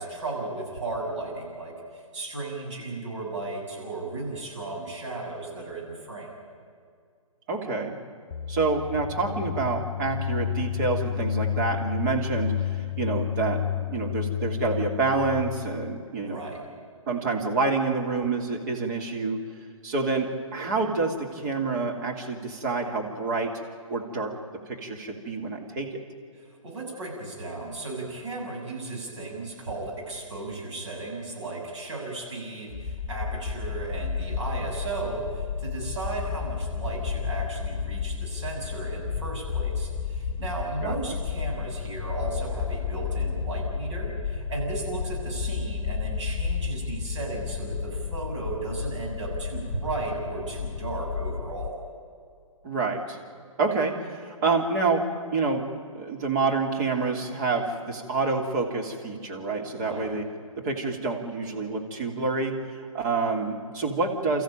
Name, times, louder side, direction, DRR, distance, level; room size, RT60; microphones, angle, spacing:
voice 1, 0.0-6.4 16.2-16.6 26.3-51.8 59.7-60.1, right 3 dB, 55° right, -2 dB, 7.3 m, -35 dB
voice 2, 7.5-7.9 8.5-16.4 17.1-19.4 19.8-23.5 23.9-24.3 24.6-25.9 40.8-41.2 52.6-53.2 53.6-55.0 55.3-55.6 55.9-60.3 60.6-64.4, right 3 dB, 35° right, 1 dB, 2.9 m, -28 dB
sound 1, 8.3-16.1, left 10 dB, 55° left, 0.6 m, -31 dB
sound 2, 32.7-48.3, left 5 dB, 10° left, 1.3 m, -35 dB
sound 3, 33.7-51.7, left 7 dB, 40° left, 1.2 m, -34 dB
30.0 x 14.0 x 9.0 m, 2.2 s
figure-of-eight pair, 130°, 18 cm